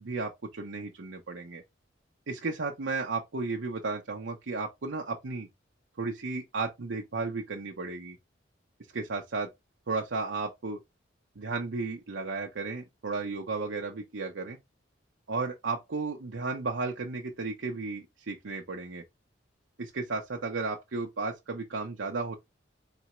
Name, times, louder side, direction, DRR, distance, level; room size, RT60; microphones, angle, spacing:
voice 1, 0.0-1.6 2.3-5.5 6.0-8.2 8.9-9.5 9.9-10.8 11.4-14.6 15.3-19.0 19.8-22.3, right 3 dB, 80° right, 0.7 m, -34 dB
4.1 x 3.4 x 2.9 m
head